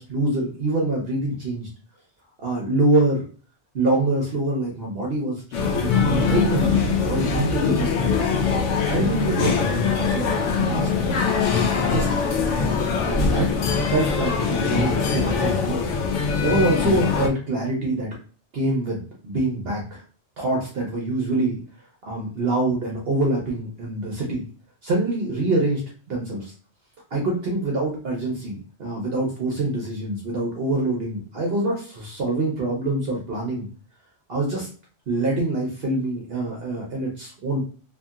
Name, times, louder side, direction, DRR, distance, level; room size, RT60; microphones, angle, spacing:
voice 1, 0.0-1.7 2.4-3.2 3.7-5.4 5.7-8.3 8.9-10.9 11.5-12.2 12.5-12.7 13.0-13.5 13.9-15.9 16.1-18.1 18.5-20.0 20.4-21.6 22.1-24.5 24.8-25.8 26.1-26.5 27.1-33.7 34.3-34.7 35.1-37.6, right 2 dB, 60° right, -2 dB, 0.9 m, -25 dB
sound 1, 5.5-17.3, left 5 dB, 80° left, 0.9 m, -22 dB
2.8 x 2.7 x 2.3 m, 0.40 s
omnidirectional pair, 1.2 m